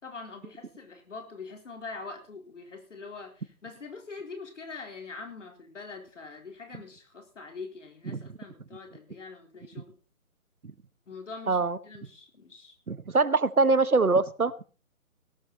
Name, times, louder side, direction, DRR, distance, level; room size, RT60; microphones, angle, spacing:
voice 1, 0.0-10.0 11.1-11.6 11.8-12.7, left 4 dB, 55° left, 4 dB, 4.2 m, -43 dB
voice 2, 11.5-11.8 12.9-14.5, right 3 dB, 85° right, 16 dB, 1.3 m, -23 dB
17.5 x 12.0 x 4.1 m, 0.36 s
figure-of-eight pair, 145°, 43 cm